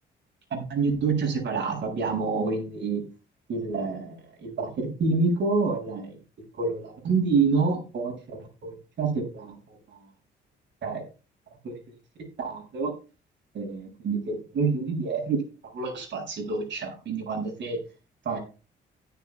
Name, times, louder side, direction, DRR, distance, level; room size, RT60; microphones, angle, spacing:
voice 1, 0.5-3.0 3.5-6.2 6.5-8.4 8.6-10.0 10.8-11.0 11.6-11.8 12.4-12.9 13.5-15.4 15.7-17.8 18.2-18.4, right 4 dB, 65° right, 2 dB, 7.9 m, -28 dB
17.0 x 11.0 x 2.3 m, 0.32 s
cardioid pair, 90°, 20 cm